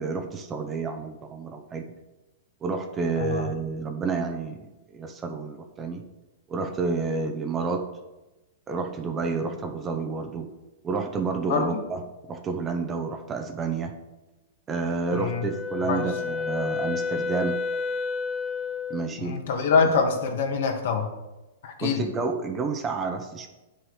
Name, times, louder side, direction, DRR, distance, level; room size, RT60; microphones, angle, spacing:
voice 1, 0.0-1.8 2.6-4.6 4.9-6.0 6.5-7.9 8.7-10.5 10.8-13.9 14.7-17.6 18.9-19.4 19.8-19.9 21.8-23.5, right 4 dB, 20° right, 4 dB, 0.8 m, -29 dB
Wind instrument woodwind instrument, 15.1-19.1, left 5 dB, 20° left, 0.6 m, -30 dB
voice 2, 19.2-21.1 21.6-22.0, left 5 dB, 60° left, 3 dB, 1.8 m, -25 dB
10.0 x 6.3 x 4.9 m, 1.0 s
hypercardioid pair, 155°, 0 cm